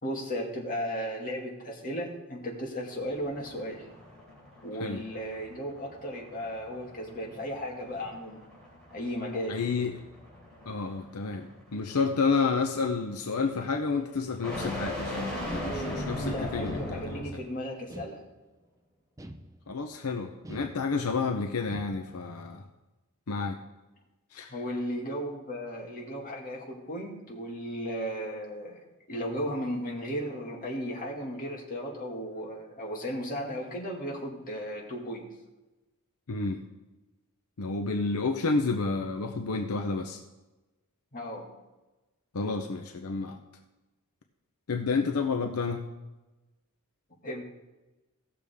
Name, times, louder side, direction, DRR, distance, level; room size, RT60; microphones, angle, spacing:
voice 1, 0.0-3.8 4.6-8.4 8.9-9.6 16.2-18.2 24.5-28.8 29.1-35.2 41.1-41.5 47.2-47.4, equal, 40° left, -1 dB, 2.1 m, -35 dB
sound 1, 2.9-17.4, left 1 dB, 5° left, 3.6 m, -39 dB
voice 2, 9.5-10.0 10.7-17.2 19.7-22.6 23.3-23.6 24.3-24.5 36.3-36.6 37.6-40.2 42.3-43.4 44.7-45.8, left 4 dB, 75° left, 4 dB, 0.7 m, -30 dB
sound 2, 16.6-17.4 17.9-18.7 19.2-20.0 20.4-21.3 21.7-22.3, right 1 dB, 15° right, 0.5 m, -46 dB
16.5 x 6.8 x 3.5 m, 1.1 s
head